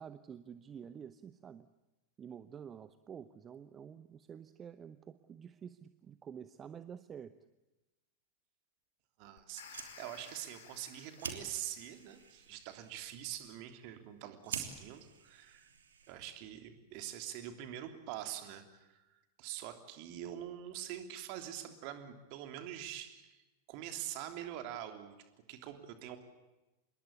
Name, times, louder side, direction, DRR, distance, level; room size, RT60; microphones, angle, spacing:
voice 1, 0.0-1.7 2.2-7.3, right 8 dB, 25° right, 14 dB, 0.9 m, -49 dB
voice 2, 9.2-15.7 16.1-23.4 23.7-25.2 25.5-26.2, right 11 dB, 45° right, 7 dB, 3.1 m, -44 dB
sound 1, 9.4-12.6, left 7 dB, 60° left, 3.8 m, -56 dB
Fire, 9.5-16.4, right 6 dB, 65° right, 3.2 m, -49 dB
26.5 x 22.0 x 8.4 m, 1.1 s
figure-of-eight pair, 90°, 0 cm